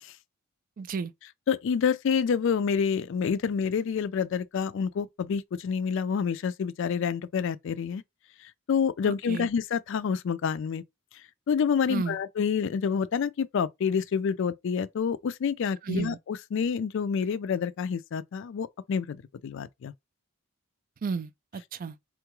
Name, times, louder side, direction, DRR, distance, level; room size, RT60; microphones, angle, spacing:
voice 1, 0.8-1.1 9.3-9.5 11.9-12.2 15.8-16.2 21.0-22.0, right 5 dB, 40° right, 0.3 m, -32 dB
voice 2, 1.5-8.0 8.7-10.8 11.5-19.9, left 6 dB, 60° left, 0.3 m, -28 dB
3.7 x 2.3 x 3.0 m
head